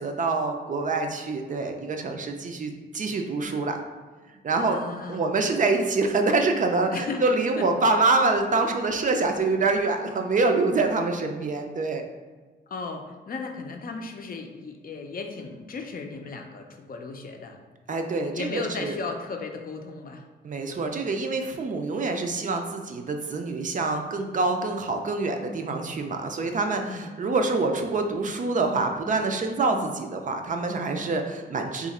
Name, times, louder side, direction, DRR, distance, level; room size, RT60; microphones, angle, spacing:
voice 1, 0.0-3.8 4.4-4.8 5.1-12.0 17.9-19.0 20.4-31.9, right 3 dB, 45° right, 4 dB, 0.4 m, -26 dB
voice 2, 4.5-5.2 6.9-7.2 7.6-7.7 12.7-17.6 18.3-20.2 26.9-27.1, left 4 dB, 50° left, 3 dB, 0.5 m, -36 dB
2.8 x 2.4 x 4.1 m, 1.3 s
cardioid pair, 90°, 18 cm